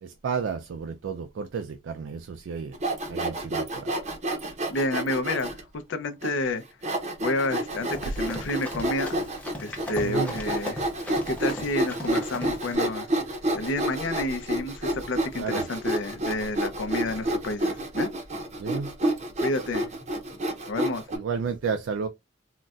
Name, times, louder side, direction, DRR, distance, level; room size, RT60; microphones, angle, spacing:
voice 1, 0.0-2.7 3.1-3.9 10.0-10.3 15.4-15.6 18.6-18.9 21.1-22.1, right 5 dB, 80° right, 0.3 m, -31 dB
Sawing, 2.7-5.6 6.2-6.3 6.8-21.2, right 1 dB, 35° right, 0.6 m, -29 dB
voice 2, 4.7-5.6 5.9-6.6 7.2-9.3 9.6-13.1 13.5-18.1 19.4-19.9 20.7-21.0, left 2 dB, 75° left, 0.5 m, -30 dB
Run, 7.7-12.7, left 1 dB, 10° left, 0.7 m, -38 dB
3.9 x 2.1 x 2.3 m
head